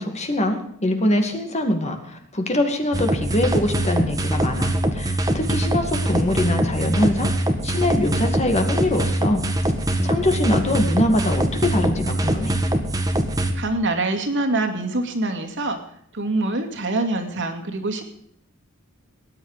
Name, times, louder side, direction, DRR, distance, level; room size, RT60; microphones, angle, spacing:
voice 1, 0.0-7.3 7.6-9.5 10.0-12.6, left 1 dB, 30° left, 5 dB, 2.3 m, -23 dB
sound 1, 2.9-13.5, right 1 dB, 15° right, 1.6 m, -23 dB
voice 2, 13.5-15.8 16.1-18.0, right 2 dB, 60° right, 4 dB, 2.5 m, -24 dB
19.0 x 10.0 x 5.0 m, 0.69 s
head